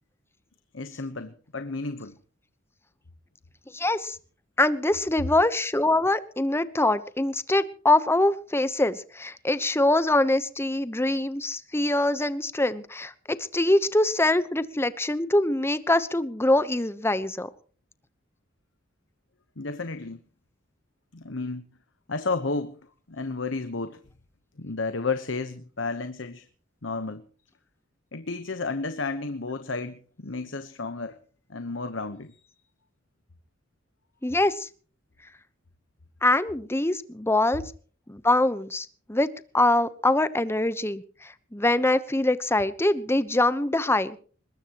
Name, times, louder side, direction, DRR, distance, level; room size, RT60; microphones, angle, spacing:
voice 1, 0.7-2.2 19.6-20.2 21.1-21.6 22.1-22.8 23.1-24.0 24.6-26.5 26.8-27.2 28.1-31.2 31.5-32.4, left 3 dB, 70° left, 1.1 m, -32 dB
voice 2, 3.7-4.2 4.6-13.1 13.4-17.5 34.2-34.7 36.2-37.6 38.1-44.2, left 2 dB, 15° left, 1.0 m, -24 dB
21.5 x 20.5 x 3.1 m
head